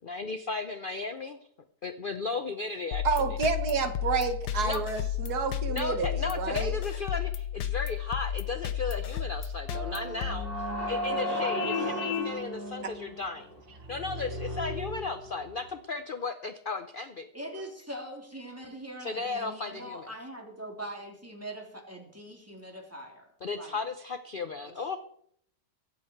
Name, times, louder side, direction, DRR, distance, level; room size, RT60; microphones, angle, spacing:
voice 1, 0.0-1.4 1.8-3.4 4.6-4.8 5.7-13.6 13.9-17.3 19.0-20.1 23.4-25.0, left 4 dB, 45° left, 9 dB, 0.7 m, -35 dB
sound 1, 2.9-11.1, left 10 dB, 85° left, 1.5 m, -33 dB
voice 2, 3.0-6.8 12.8-12.9, right 5 dB, 70° right, 9 dB, 1.6 m, -29 dB
sound 2, 9.7-15.7, equal, 30° right, 3.4 m, -35 dB
voice 3, 11.2-11.6 17.3-23.3 23.6-23.8 24.6-24.8, right 1 dB, 10° right, 1 dB, 3.2 m, -42 dB
Vehicle horn car horn honking, 11.6-12.3, left 9 dB, 65° left, 2.0 m, -32 dB
23.0 x 8.6 x 4.6 m, 0.66 s
omnidirectional pair, 1.8 m